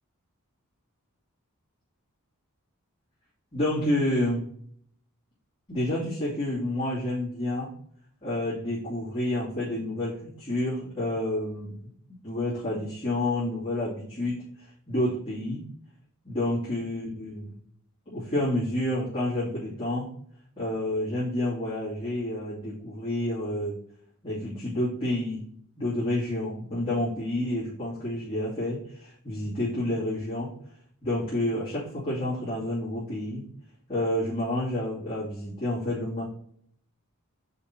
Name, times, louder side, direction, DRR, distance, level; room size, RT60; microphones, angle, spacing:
voice 1, 3.5-4.4 5.7-7.7 8.2-11.9 12.2-15.6 16.2-17.6 18.1-20.1 20.6-23.8 24.2-25.4 25.8-30.5 31.0-33.4 33.9-36.3, left 1 dB, 25° left, -10 dB, 2.8 m, -29 dB
6.7 x 5.1 x 2.9 m, 0.63 s
head